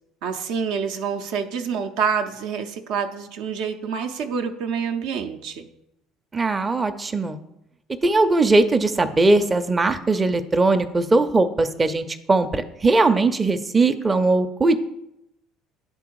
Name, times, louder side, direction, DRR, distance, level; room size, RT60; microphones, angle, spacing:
voice 1, 0.2-5.7, right 6 dB, 70° right, 6 dB, 0.6 m, -27 dB
voice 2, 6.3-7.4 8.0-14.8, right 3 dB, 25° right, 8 dB, 0.6 m, -20 dB
9.5 x 3.5 x 4.7 m, 0.85 s
hypercardioid pair, 65°, 0 cm